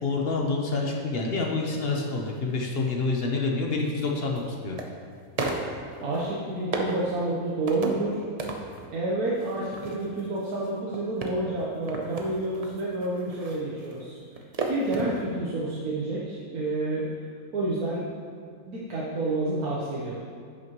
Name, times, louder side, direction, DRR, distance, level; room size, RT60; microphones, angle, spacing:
voice 1, 0.0-4.8, left 3 dB, 50° left, 0 dB, 0.9 m, -27 dB
sound 1, 2.4-2.6 3.9-4.9 5.4-6.3 6.7-7.1 7.7-8.1 8.4-8.9 9.4-15.2 15.5-15.6, right 3 dB, 40° right, 0.5 m, -34 dB
voice 2, 6.0-8.2 8.9-14.2 14.7-17.1 17.5-18.0 18.7-20.2, right 2 dB, 85° right, -6 dB, 1.5 m, -29 dB
10.5 x 6.6 x 3.0 m, 2.2 s
omnidirectional pair, 1.5 m